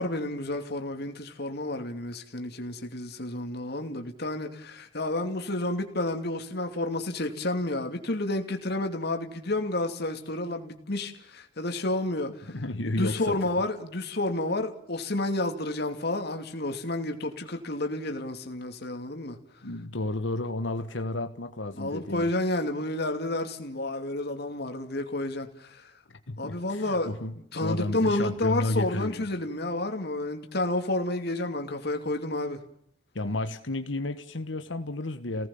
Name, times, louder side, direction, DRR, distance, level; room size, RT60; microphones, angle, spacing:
voice 1, 0.0-12.5 12.8-19.4 21.7-25.9 26.4-32.6, left 2 dB, 60° left, 2.6 m, -30 dB
voice 2, 12.5-13.4 19.6-22.2 26.3-27.3 27.6-29.2 33.1-35.5, left 2 dB, 80° left, 1.6 m, -32 dB
29.5 x 18.5 x 7.2 m
head